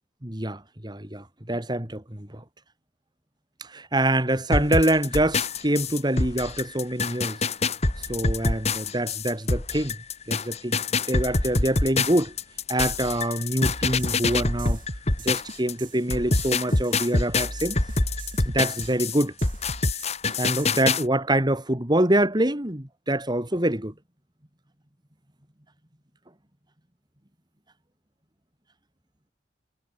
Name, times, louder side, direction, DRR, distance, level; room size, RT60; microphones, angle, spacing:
voice 1, 0.2-2.4 3.6-7.4 8.1-10.0 10.3-10.8 11.1-12.3 12.7-14.8 15.2-17.8 18.4-19.3 20.4-23.9, right 1 dB, 25° right, 3.1 m, -25 dB
sound 1, 4.5-15.7 16.1-21.0, left 3 dB, 35° left, 2.0 m, -25 dB
sound 2, 13.7-20.8, right 1 dB, 45° right, 4.0 m, -38 dB
head